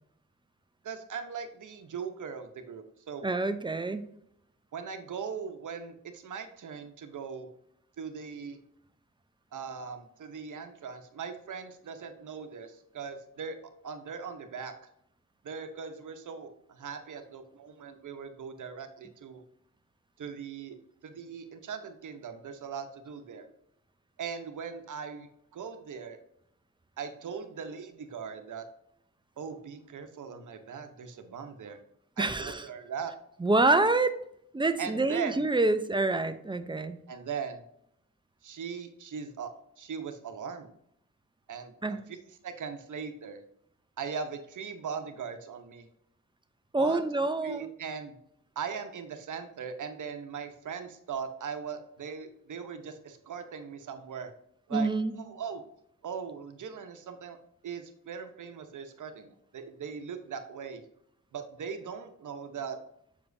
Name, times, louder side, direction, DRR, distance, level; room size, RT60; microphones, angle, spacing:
voice 1, 0.8-3.3 4.7-7.5 8.0-8.6 9.5-13.6 13.8-14.9 15.4-19.4 20.2-20.8 21.0-23.5 24.2-26.2 27.0-28.7 29.4-31.8 32.2-33.1 34.8-35.5 37.1-37.6 38.4-39.5 39.8-40.7 41.5-43.4 44.0-45.9 46.8-47.0 47.4-48.1 48.6-54.3 54.7-54.9 55.1-55.6 56.0-57.4 57.6-60.8 61.3-62.8, right 6 dB, 80° right, 7 dB, 0.9 m, -39 dB
voice 2, 3.2-4.1 32.2-32.7 33.4-34.2 34.5-37.0 41.8-42.0 46.7-47.7 54.7-55.2, right 2 dB, 15° right, 10 dB, 0.6 m, -27 dB
7.3 x 4.9 x 2.7 m, 0.73 s
cardioid pair, 70°, 30 cm